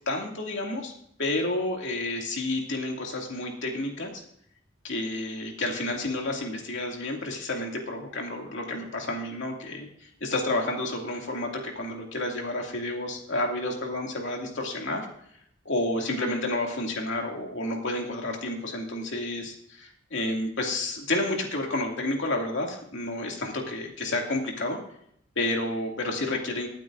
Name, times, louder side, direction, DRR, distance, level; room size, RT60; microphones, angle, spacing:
voice 1, 0.1-0.9 1.2-4.2 4.8-15.1 15.7-24.8 25.4-26.7, left 2 dB, 75° left, 0 dB, 2.4 m, -30 dB
24.0 x 9.0 x 2.6 m, 0.70 s
head